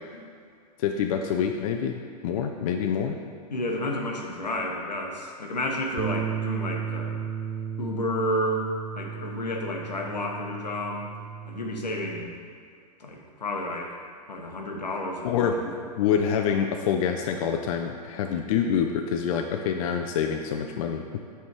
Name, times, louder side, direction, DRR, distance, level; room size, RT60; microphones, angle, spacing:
voice 1, 0.8-3.2 15.2-15.6 16.0-21.0, left 7 dB, 55° left, 3 dB, 0.5 m, -26 dB
voice 2, 3.5-7.2 7.8-8.7 9.0-11.0 11.5-12.3 13.0-13.9 14.3-15.7, left 1 dB, 90° left, 1 dB, 0.9 m, -31 dB
Bass guitar, 6.0-12.2, right 8 dB, 45° right, 0.5 m, -34 dB
7.2 x 3.5 x 4.5 m, 2.3 s
figure-of-eight pair, 105°, 21 cm